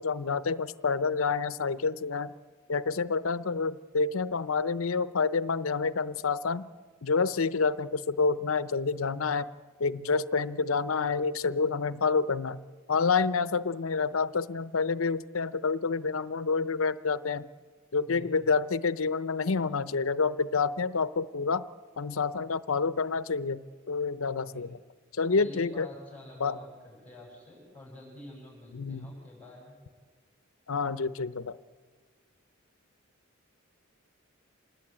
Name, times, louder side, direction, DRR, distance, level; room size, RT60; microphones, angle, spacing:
voice 1, 0.0-2.3 2.7-6.7 7.0-9.5 9.8-12.6 12.9-17.5 17.9-21.6 22.0-24.7 25.1-25.9 26.4-26.6 28.7-29.1 30.7-31.5, left 4 dB, 90° left, 15 dB, 0.7 m, -28 dB
voice 2, 18.1-18.5 24.4-24.7 25.4-29.8, left 1 dB, 5° left, -6 dB, 7.0 m, -48 dB
27.0 x 19.5 x 8.8 m, 1.5 s
head